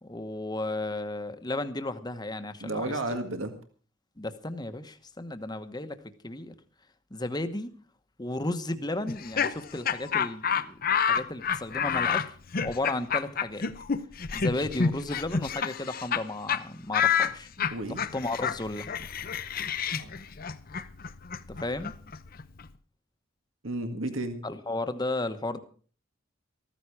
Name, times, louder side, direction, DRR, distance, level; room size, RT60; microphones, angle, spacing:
voice 1, 0.0-3.2 4.2-6.5 7.1-7.7 8.2-12.4 12.6-13.7 14.3-17.5 18.1-19.1 21.5-22.0 24.4-25.6, left 2 dB, 20° left, 10 dB, 1.1 m, -34 dB
voice 2, 2.6-3.5 17.6-18.0 19.9-20.1 23.6-24.4, right 2 dB, 80° right, 7 dB, 1.8 m, -33 dB
Laughter, 9.1-16.2 16.5-16.6 16.9-22.7, left 7 dB, 45° left, 0.7 m, -29 dB
14.5 x 14.5 x 4.8 m, 0.42 s
head